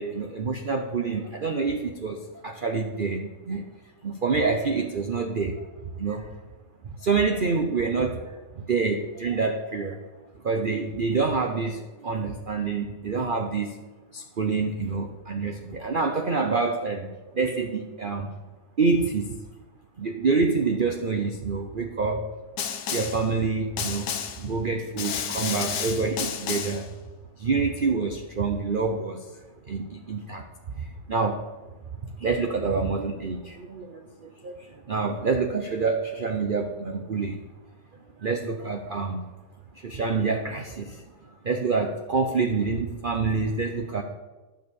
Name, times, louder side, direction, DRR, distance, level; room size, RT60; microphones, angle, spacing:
voice 1, 0.0-3.7 4.0-6.3 7.0-10.0 10.4-13.8 14.1-18.3 18.8-19.4 20.0-22.3 22.8-26.9 27.4-29.3 29.7-30.5 30.7-31.5 32.0-37.4 38.2-39.3 39.7-41.0 41.4-44.0, right 4 dB, 50° right, 4 dB, 0.6 m, -27 dB
Snare drum, 22.6-23.3 23.8-24.5 25.0-26.9, left 8 dB, 75° left, 1.5 m, -31 dB
11.5 x 6.4 x 6.8 m, 1.2 s
omnidirectional pair, 1.9 m